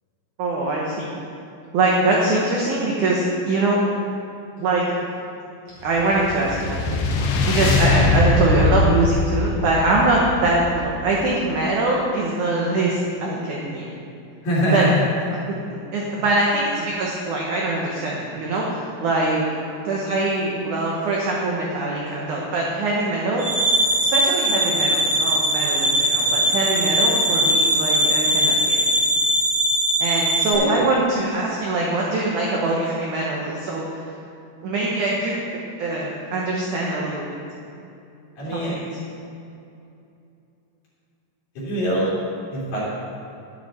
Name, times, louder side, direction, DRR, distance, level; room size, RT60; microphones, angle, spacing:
voice 1, 0.4-1.1 1.7-3.8 4.6-4.8 5.8-13.9 14.7-14.8 15.5-15.6 15.9-19.4 19.8-23.4 24.1-28.8 30.0-34.0 34.6-35.4 35.8-37.2 38.5-38.8, right 2 dB, 85° right, -3 dB, 1.7 m, -23 dB
sound 1, 5.9-11.3, left 2 dB, 75° left, 3.0 m, -22 dB
voice 2, 14.4-15.0 30.5-30.8 38.4-38.8 41.6-42.1 42.5-42.8, equal, 50° left, -9 dB, 4.2 m, -22 dB
sound 2, 23.4-30.5, right 1 dB, 45° right, 2.6 m, -20 dB
11.5 x 10.5 x 4.4 m, 2.7 s
omnidirectional pair, 5.3 m